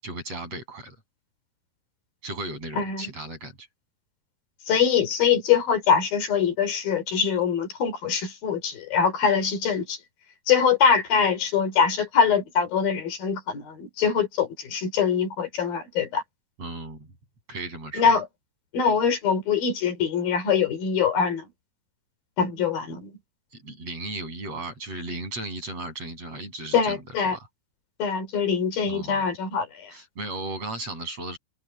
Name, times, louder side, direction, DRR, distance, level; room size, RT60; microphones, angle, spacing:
voice 1, 0.0-1.0 2.2-3.7 16.6-17.1 17.5-18.1 23.5-27.5 28.9-29.3 29.9-31.4, right 2 dB, 45° right, 9.2 m, -36 dB
voice 2, 4.7-10.0 10.5-16.2 18.0-18.2 18.7-21.5 22.4-23.1 26.7-27.4 28.0-29.9, left 6 dB, 90° left, 5.7 m, -23 dB
omnidirectional pair, 4.0 m